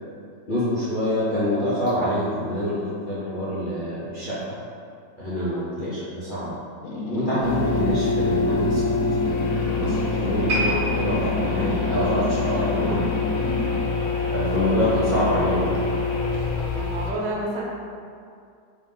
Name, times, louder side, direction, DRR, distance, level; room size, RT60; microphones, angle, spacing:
voice 1, 0.5-4.3 5.2-6.6 7.1-8.8 9.2-13.1 14.3-15.8, equal, 45° left, -11 dB, 0.7 m, -26 dB
voice 2, 5.4-5.7 12.4-13.0 13.6-14.0 16.5-17.7, right 1 dB, 80° right, -3 dB, 1.4 m, -33 dB
sound 1, 6.8-13.9, left 1 dB, 70° left, 1.0 m, -30 dB
sound 2, 7.4-17.1, left 4 dB, 90° left, 1.3 m, -25 dB
sound 3, 10.5-13.8 14.1-14.4 15.0-15.1, right 2 dB, 55° right, 1.7 m, -32 dB
3.4 x 2.8 x 3.7 m, 2.3 s
omnidirectional pair, 1.9 m